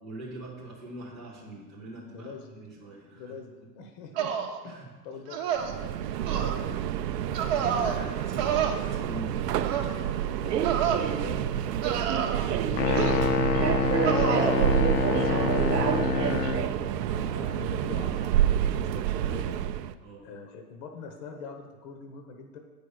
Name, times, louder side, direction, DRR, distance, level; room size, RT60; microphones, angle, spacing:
voice 1, 0.0-3.7 4.6-4.9 7.5-10.6 20.0-20.3, right 1 dB, ahead, -10 dB, 0.3 m, -43 dB
voice 2, 2.1-2.6 3.2-6.8 10.4-19.5 20.2-22.6, left 4 dB, 40° left, 4 dB, 1.0 m, -44 dB
sound 1, 4.2-4.6 5.3-5.8 6.3-6.5 7.3-8.0 8.4-8.7 9.6-9.9 10.6-11.0 11.8-12.5 13.0-13.4 14.0-14.6, right 8 dB, 35° right, 0.9 m, -29 dB
Subway metro underground, 5.6-19.9, right 11 dB, 80° right, 0.6 m, -28 dB
sound 2, 12.8-16.7, left 6 dB, 75° left, 0.9 m, -26 dB
9.1 x 5.1 x 6.3 m, 1.4 s
hypercardioid pair, 145°, 48 cm